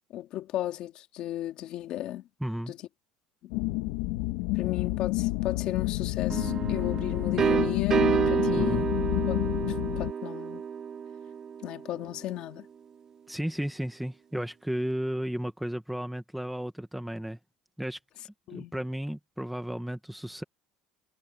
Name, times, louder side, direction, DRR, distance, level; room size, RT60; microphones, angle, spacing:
voice 1, 0.0-2.2 2.7-2.8 3.4-3.5 4.5-8.9 9.3-9.4 9.7-10.6 11.6-12.7 18.5-18.7, left 13 dB, 45° left, 2.2 m, -35 dB
voice 2, 2.4-2.7 8.6-8.9 13.3-17.4 17.8-18.0 18.5-20.4, equal, ahead, 1.1 m, -33 dB
sound 1, 3.5-10.1, left 20 dB, 80° left, 1.6 m, -29 dB
sound 2, 6.3-12.0, right 7 dB, 25° right, 0.5 m, -29 dB
cardioid pair, 170°, 2 cm